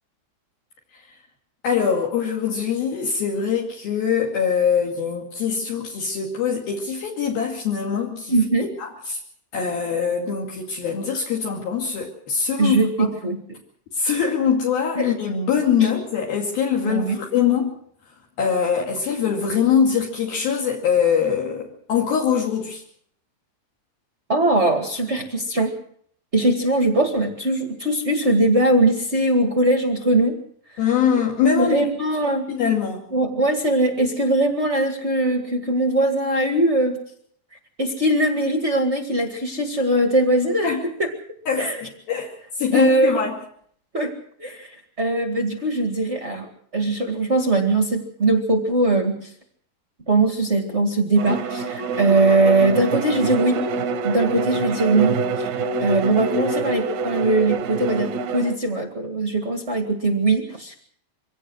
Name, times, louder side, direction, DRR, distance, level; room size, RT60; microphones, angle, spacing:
voice 1, 1.6-9.2 9.5-13.1 13.9-17.7 18.4-22.8 30.8-31.9 32.5-33.0 40.6-40.8 41.5-43.3, left 7 dB, 60° left, 0 dB, 4.1 m, -23 dB
voice 2, 8.3-8.7 12.6-13.4 14.9-15.0 15.8-15.9 16.8-17.2 24.3-25.7 26.3-30.4 31.5-32.5 33.1-37.0 37.8-40.7 41.0-41.1 41.6-41.8 42.7-43.2 43.9-44.1 44.4-49.3 50.1-53.6 54.0-55.5 55.8-60.7, right 2 dB, 45° right, 4 dB, 0.8 m, -21 dB
Bowed string instrument, 51.2-58.6, right 4 dB, 75° right, 1.8 m, -26 dB
24.0 x 17.5 x 6.3 m, 0.64 s
omnidirectional pair, 5.0 m